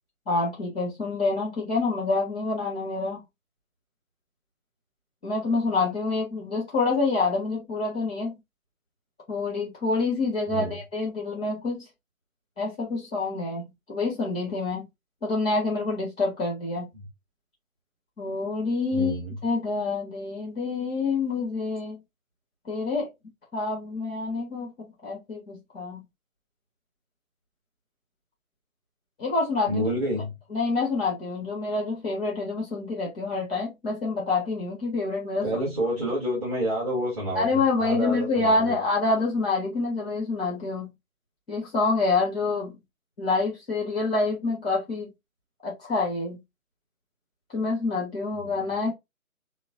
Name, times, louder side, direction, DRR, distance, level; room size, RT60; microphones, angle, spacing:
voice 1, 0.3-3.2 5.2-8.4 9.3-11.9 12.6-14.9 15.2-16.9 18.2-19.1 19.4-22.0 22.6-23.1 23.5-26.0 29.2-29.8 30.5-35.4 37.3-40.9 41.5-42.8 43.2-45.1 45.6-46.4 47.5-48.9, left 3 dB, 5° left, 0.7 m, -27 dB
voice 2, 18.9-19.3 29.7-30.3 35.4-38.7 48.4-48.5, equal, 25° right, 1.6 m, -29 dB
6.0 x 2.2 x 2.6 m
figure-of-eight pair, 145°, 42 cm